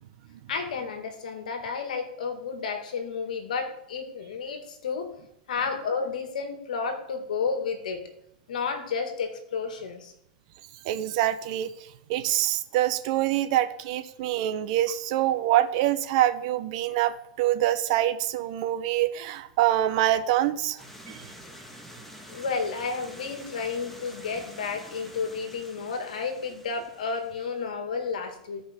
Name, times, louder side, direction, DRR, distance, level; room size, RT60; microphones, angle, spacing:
voice 1, 0.5-5.1 5.5-8.0 8.5-10.1 22.3-28.6, left 5 dB, 85° left, 6 dB, 1.8 m, -31 dB
voice 2, 10.8-11.7 12.1-21.2, right 13 dB, 60° right, 11 dB, 0.8 m, -25 dB
sound 1, 20.8-27.7, equal, 5° left, 1.5 m, -47 dB
15.0 x 5.1 x 3.6 m, 0.74 s
hypercardioid pair, 120°, 4 cm